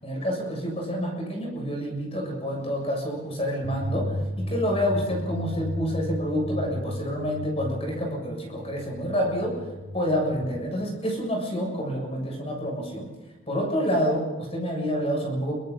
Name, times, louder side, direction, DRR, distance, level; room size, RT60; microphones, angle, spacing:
voice 1, 0.0-9.6 9.9-13.1 13.5-15.5, equal, 30° left, 0 dB, 7.4 m, -28 dB
sound 1, 3.6-10.4, left 1 dB, 45° left, 4.3 m, -34 dB
28.5 x 25.0 x 4.2 m, 1.2 s
head